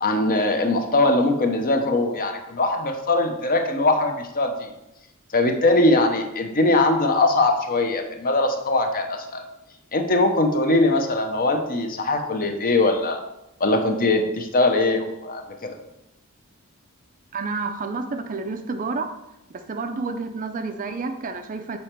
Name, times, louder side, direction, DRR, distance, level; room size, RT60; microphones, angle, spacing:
voice 1, 0.0-4.7 5.3-9.4 9.9-13.2 13.6-15.8, left 2 dB, 40° left, 5 dB, 0.8 m, -21 dB
voice 2, 17.3-19.1 19.5-21.8, right 4 dB, 35° right, 6 dB, 0.5 m, -29 dB
7.0 x 4.4 x 4.5 m, 0.89 s
head